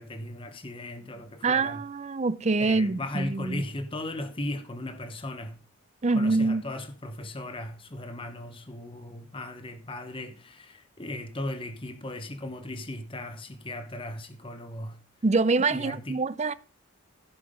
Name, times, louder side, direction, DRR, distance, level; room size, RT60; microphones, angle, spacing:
voice 1, 0.0-1.8 2.6-5.6 6.1-15.0 15.7-16.2, left 1 dB, 25° left, 0.9 m, -37 dB
voice 2, 1.4-3.6 6.0-6.6 15.2-16.5, right 3 dB, 30° right, 0.5 m, -25 dB
15.0 x 5.9 x 5.1 m
head